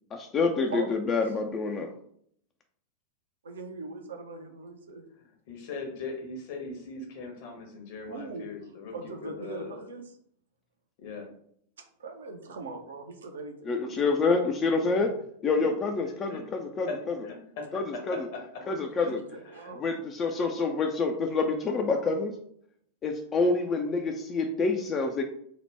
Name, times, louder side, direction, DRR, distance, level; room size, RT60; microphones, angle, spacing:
voice 1, 0.1-1.9 13.7-15.1 15.4-17.1 17.7-18.2 18.7-19.2 19.7-22.3 23.0-25.2, left 4 dB, 25° left, 3 dB, 0.3 m, -27 dB
voice 2, 0.7-1.2 3.4-5.0 8.1-10.2 12.0-13.9 19.0-19.9, right 3 dB, 65° right, 4 dB, 0.5 m, -41 dB
voice 3, 5.5-8.9 9.2-9.8 11.0-11.3 15.0-15.1 15.6-15.7 16.3-16.4 16.9-18.7 19.0-19.1 19.5-19.7, left 3 dB, 50° left, 2 dB, 0.8 m, -40 dB
2.8 x 2.1 x 3.3 m, 0.67 s
figure-of-eight pair, 90°, 0 cm